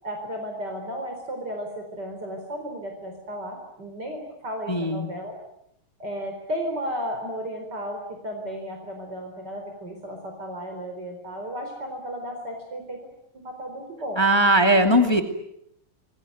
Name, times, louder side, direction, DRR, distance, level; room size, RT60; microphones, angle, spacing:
voice 1, 0.0-5.3 6.0-13.0 13.4-14.2, equal, 50° right, 3 dB, 5.0 m, -34 dB
voice 2, 4.7-5.1 14.2-15.2, right 1 dB, 10° left, 6 dB, 2.2 m, -19 dB
27.0 x 21.5 x 9.4 m, 0.76 s
omnidirectional pair, 2.4 m